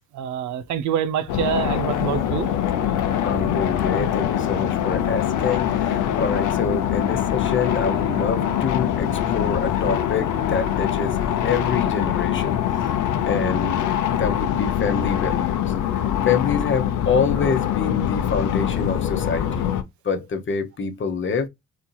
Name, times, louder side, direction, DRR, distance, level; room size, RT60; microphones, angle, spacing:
voice 1, 0.1-2.5, right 9 dB, 70° right, 0.6 m, -26 dB
sound 1, 1.3-19.8, left 10 dB, 80° left, 0.7 m, -23 dB
voice 2, 3.2-11.2 11.4-12.6 13.3-13.9 14.1-15.7 16.2-19.7 20.0-21.5, left 5 dB, 40° left, 1.0 m, -26 dB
4.3 x 2.8 x 2.2 m
cardioid pair, 90°, 30 cm